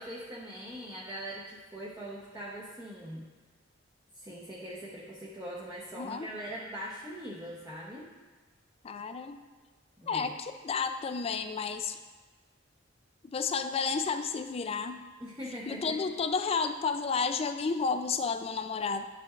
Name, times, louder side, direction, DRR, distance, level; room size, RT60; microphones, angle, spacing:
voice 1, 0.0-3.3 4.1-8.1 10.0-10.3 15.2-16.0, equal, 20° right, -6 dB, 0.8 m, -41 dB
voice 2, 5.9-6.3 8.8-9.4 10.1-12.0 13.3-15.0 15.7-19.1, left 5 dB, 30° left, 8 dB, 0.3 m, -31 dB
9.9 x 5.7 x 2.4 m, 1.3 s
head